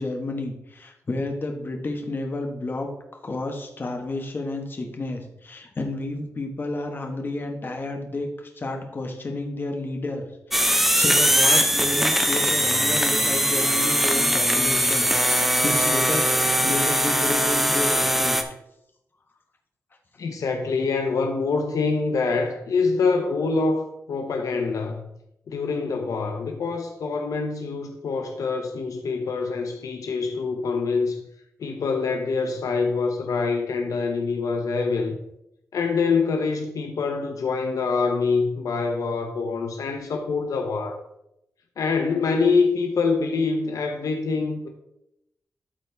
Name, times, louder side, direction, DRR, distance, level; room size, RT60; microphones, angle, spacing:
voice 1, 0.0-2.9 3.2-8.3 8.6-18.4, left 2 dB, 40° left, 1.3 m, -31 dB
sound 1, 10.5-18.4, equal, 5° right, 0.7 m, -21 dB
voice 2, 20.2-25.1 25.5-31.2 31.6-35.2 35.7-41.0 41.8-44.7, left 4 dB, 80° left, 0.8 m, -25 dB
12.5 x 4.3 x 3.4 m
wide cardioid pair, 120°, 6 cm